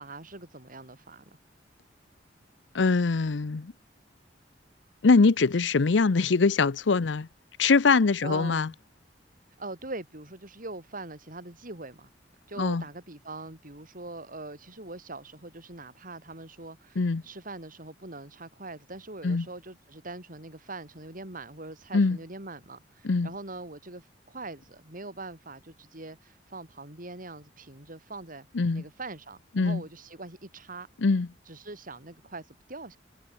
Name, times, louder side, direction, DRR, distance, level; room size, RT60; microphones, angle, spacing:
voice 1, 0.0-1.4 8.2-8.8 9.6-12.1 12.5-28.5 28.7-30.9 31.5-33.0, right 2 dB, 50° right, 5.5 m, -42 dB
voice 2, 2.7-3.7 5.0-7.3 7.6-8.7 12.6-12.8 17.0-17.2 19.2-19.5 21.9-22.2 23.0-23.3 28.5-28.8 29.6-29.8 31.0-31.3, left 4 dB, 80° left, 0.7 m, -23 dB
head